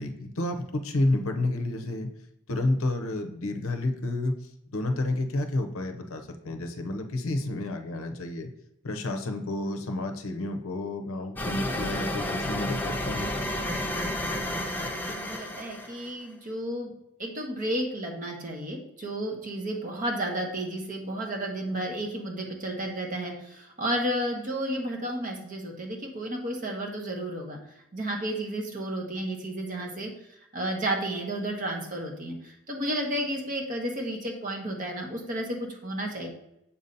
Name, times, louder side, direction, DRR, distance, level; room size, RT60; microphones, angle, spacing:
voice 1, 0.0-2.1 2.5-8.5 8.8-13.3, left 2 dB, 65° left, 5 dB, 0.6 m, -30 dB
sound 1, 11.4-16.1, left 1 dB, 10° left, 0.5 m, -31 dB
voice 2, 14.6-16.9 17.2-27.6 27.9-30.1 30.5-36.3, right 1 dB, 35° right, 0 dB, 1.0 m, -32 dB
7.0 x 2.7 x 5.2 m, 0.81 s
head